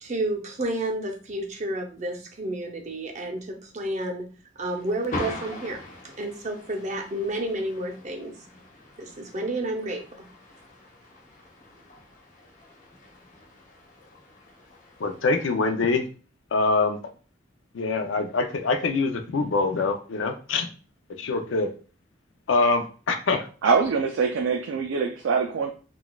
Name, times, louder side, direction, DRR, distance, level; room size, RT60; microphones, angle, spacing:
voice 1, 0.0-4.3 4.6-5.8 6.2-8.3 9.0-10.0, right 1 dB, 40° right, 1 dB, 0.6 m, -30 dB
sound 1, 4.6-15.5, left 2 dB, 40° left, 0.8 m, -42 dB
voice 2, 15.0-16.0 16.5-17.0 17.7-20.7 21.2-21.7 22.5-23.5, left 3 dB, 85° left, 6 dB, 0.5 m, -24 dB
voice 3, 23.6-25.7, right 5 dB, 85° right, 3 dB, 0.4 m, -23 dB
3.9 x 2.3 x 2.3 m, 0.37 s
head